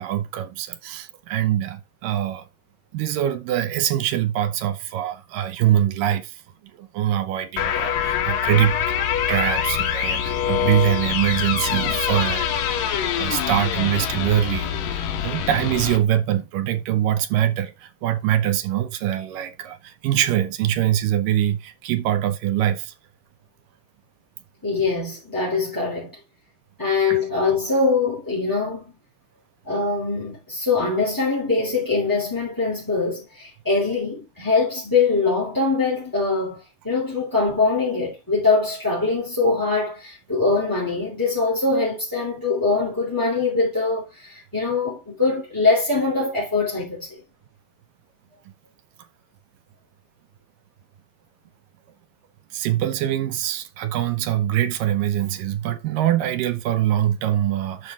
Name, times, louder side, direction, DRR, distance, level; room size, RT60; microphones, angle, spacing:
voice 1, 0.0-2.5 2.9-6.4 6.8-8.9 9.3-12.6 13.2-22.9 27.1-27.2 52.5-57.9, right 11 dB, 75° right, 2.3 m, -23 dB
sound 1, 7.6-16.0, left 9 dB, 70° left, 2.7 m, -24 dB
voice 2, 24.6-26.2 26.8-28.9 29.6-36.6 36.8-47.2, left 3 dB, 5° left, 2.6 m, -23 dB
12.0 x 5.0 x 3.6 m
omnidirectional pair, 4.3 m